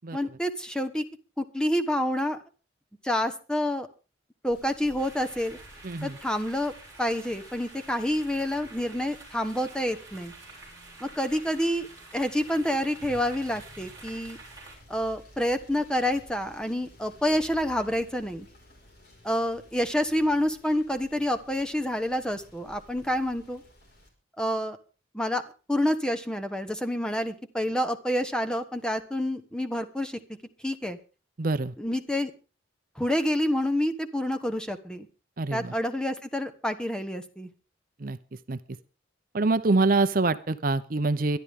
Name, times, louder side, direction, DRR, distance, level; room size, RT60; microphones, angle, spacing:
voice 1, 0.1-1.0 1.4-2.4 3.0-3.9 4.4-5.6 6.0-10.3 11.0-11.9 12.1-14.4 14.9-18.5 19.2-23.6 24.4-24.8 25.1-25.4 25.7-30.2 30.6-31.0 31.8-32.3 33.0-35.1 35.5-37.5, left 1 dB, 5° left, 8 dB, 1.1 m, -28 dB
Rain / Motor vehicle (road), 4.5-24.1, left 1 dB, 55° left, 5.1 m, -54 dB
sound 1, 5.0-14.7, right 3 dB, 15° right, 6.2 m, -49 dB
voice 2, 5.8-6.2 31.4-31.7 35.4-35.7 38.0-38.8 39.3-41.4, right 3 dB, 45° right, 12 dB, 0.6 m, -25 dB
23.0 x 11.0 x 3.6 m, 0.35 s
head